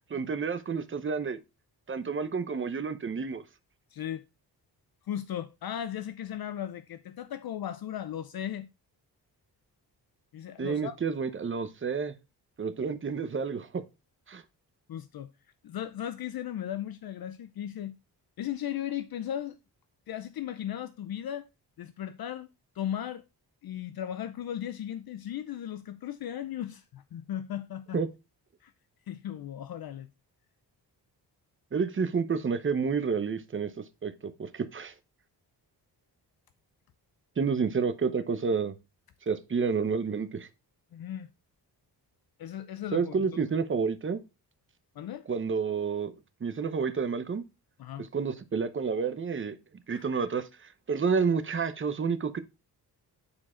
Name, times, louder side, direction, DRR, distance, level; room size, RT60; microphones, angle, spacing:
voice 1, 0.1-1.4 1.9-3.4 10.6-12.1 12.6-13.8 14.3-14.4 27.9-28.1 31.7-33.7 34.0-34.9 37.4-38.7 39.3-40.5 42.9-44.2 45.3-46.1 46.4-47.4 48.1-49.6 49.9-50.5 50.9-52.4, right 5 dB, 30° right, 0.8 m, -29 dB
voice 2, 3.9-4.2 5.0-8.7 10.3-11.0 14.9-15.3 15.6-17.9 18.4-19.6 20.1-21.5 21.8-22.5 22.7-23.2 23.6-28.0 28.6-28.7 29.1-30.1 40.9-41.3 42.4-43.1 45.0-45.3 47.8-48.1 49.9-50.1, left 10 dB, 65° left, 0.6 m, -36 dB
8.6 x 4.7 x 4.3 m
wide cardioid pair, 150°, 40 cm